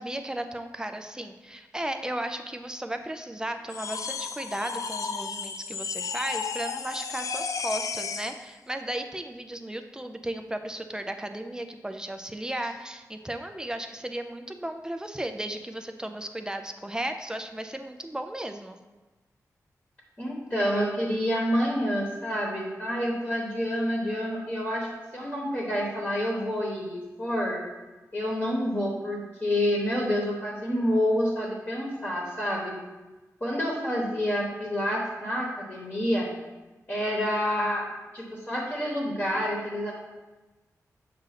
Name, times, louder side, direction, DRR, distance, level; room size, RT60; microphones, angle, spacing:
voice 1, 0.0-18.8, right 1 dB, 10° right, 6 dB, 0.3 m, -35 dB
sound 1, 3.7-8.4, left 5 dB, 65° left, 0.3 m, -33 dB
voice 2, 20.2-27.6 28.1-32.7 33.4-36.3 36.9-37.8 38.1-39.9, equal, 25° left, -4 dB, 1.1 m, -28 dB
7.4 x 2.5 x 5.7 m, 1.2 s
wide cardioid pair, 130°, 6 cm